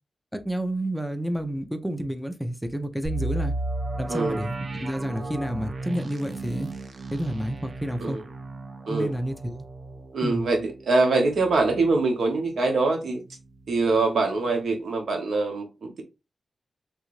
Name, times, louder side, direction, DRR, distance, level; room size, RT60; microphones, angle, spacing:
voice 1, 0.3-3.5 4.0-6.7 7.1-8.2 8.9-9.6 10.2-10.5, right 1 dB, ahead, 0.5 m, -30 dB
sound 1, 3.0-12.8 13.1-13.2 13.7-14.0, right 2 dB, 55° right, 0.5 m, -35 dB
voice 2, 10.1-13.2 13.7-16.0, right 3 dB, 85° right, 0.9 m, -24 dB
3.2 x 2.5 x 3.0 m
wide cardioid pair, 95°, 0 cm